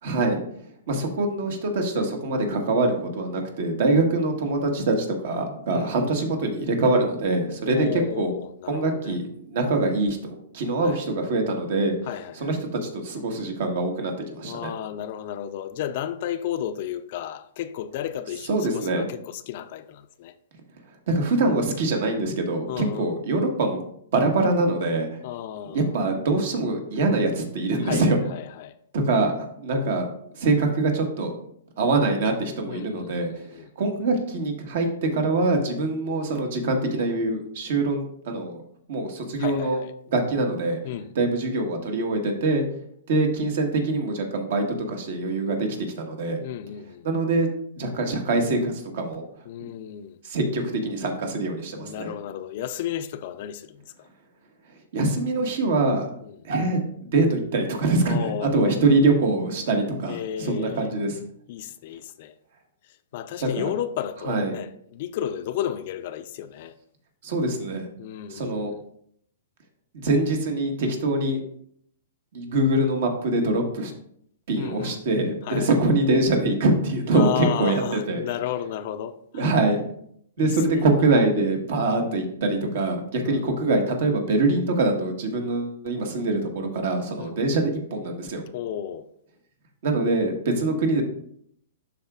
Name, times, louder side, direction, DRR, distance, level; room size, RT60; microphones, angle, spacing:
voice 1, 0.0-8.3 8.7-12.0 12.3-14.7 18.5-19.0 20.7-23.8 24.1-25.2 25.7-28.2 28.9-30.1 30.3-31.3 31.8-38.6 38.9-39.8 40.1-40.8 41.1-42.7 43.1-46.4 47.0-47.5 47.8-49.7 50.2-52.1 54.6-56.1 56.4-61.2 63.4-63.7 64.2-64.5 67.2-67.9 68.3-68.7 69.9-71.4 72.3-73.9 74.5-78.2 79.3-79.8 80.4-88.4 89.8-91.0, right 2 dB, 60° right, 1.4 m, -24 dB
voice 2, 7.7-9.2 10.8-11.0 12.1-12.5 14.4-20.4 22.7-23.2 25.2-25.8 27.8-28.8 32.7-33.7 39.4-39.9 40.8-41.1 46.4-47.1 49.5-50.2 51.7-54.1 56.2-56.4 58.0-58.8 60.1-60.9 61.5-62.4 62.8-66.8 68.0-68.8 74.6-75.0 75.5-75.8 77.1-79.5 80.4-80.5 81.0-81.2 83.2-83.7 87.2-87.3 88.5-89.1, left 11 dB, 50° left, 0.4 m, -33 dB
11.5 x 3.9 x 2.4 m
hypercardioid pair, 130°, 0 cm